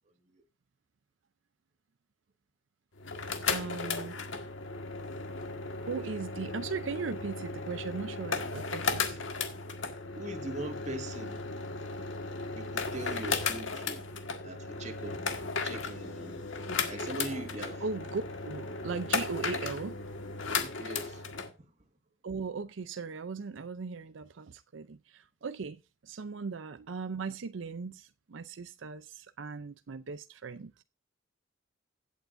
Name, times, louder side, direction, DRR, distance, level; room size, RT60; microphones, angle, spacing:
voice 1, 0.1-0.4 10.1-11.5 12.5-14.0 14.4-15.2 15.6-16.4 16.9-17.9 20.8-21.7, right 1 dB, 35° right, 1.9 m, -41 dB
sound 1, 3.0-21.5, left 4 dB, 85° left, 1.7 m, -35 dB
voice 2, 3.5-4.2 5.8-9.2 17.8-20.0 22.2-30.7, right 5 dB, 85° right, 0.5 m, -38 dB
16.0 x 8.5 x 2.6 m
head